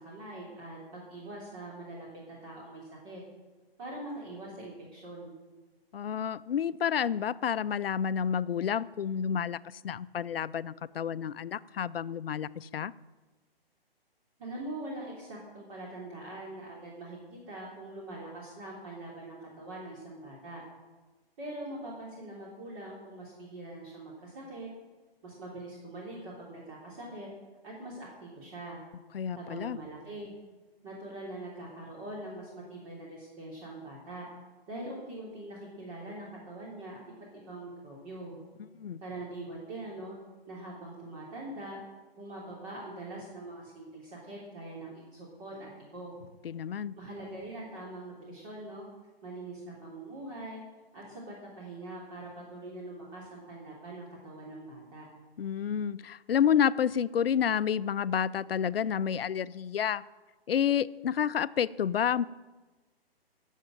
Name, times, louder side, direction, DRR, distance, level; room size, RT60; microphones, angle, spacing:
voice 1, 0.0-3.2 3.8-5.3 14.4-20.6 21.4-24.7 25.2-27.3 27.6-28.8 29.3-30.3 30.8-34.3 34.7-38.4 39.0-40.2 40.5-41.8 42.2-46.2 47.0-48.9 49.2-50.6 50.9-55.1, right 1 dB, 35° right, -4 dB, 3.3 m, -43 dB
voice 2, 5.9-12.9 29.1-29.8 38.8-39.0 46.4-47.0 55.4-60.0 60.5-62.3, left 8 dB, 70° left, 17 dB, 0.6 m, -29 dB
13.0 x 7.4 x 8.8 m, 1.2 s
figure-of-eight pair, 140°, 30 cm